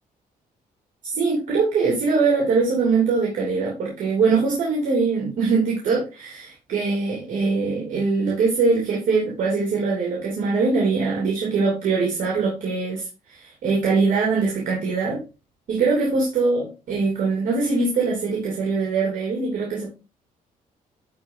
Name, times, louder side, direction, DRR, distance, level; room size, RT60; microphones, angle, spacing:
voice 1, 1.1-15.2 15.7-19.9, right 4 dB, 60° right, -3 dB, 3.1 m, -22 dB
11.5 x 4.3 x 3.9 m, 0.31 s
cardioid pair, 160°, 15 cm